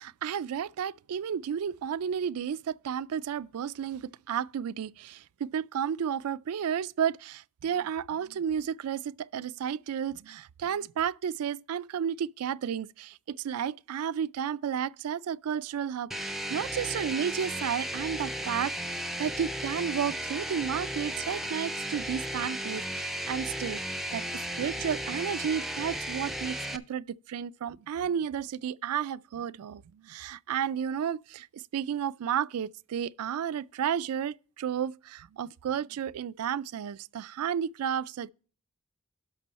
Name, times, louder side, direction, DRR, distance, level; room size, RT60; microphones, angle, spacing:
voice 1, 0.0-38.3, right 8 dB, 85° right, 0.4 m, -32 dB
sound 1, 16.1-26.8, right 1 dB, ahead, 0.4 m, -35 dB
11.5 x 6.2 x 4.1 m
head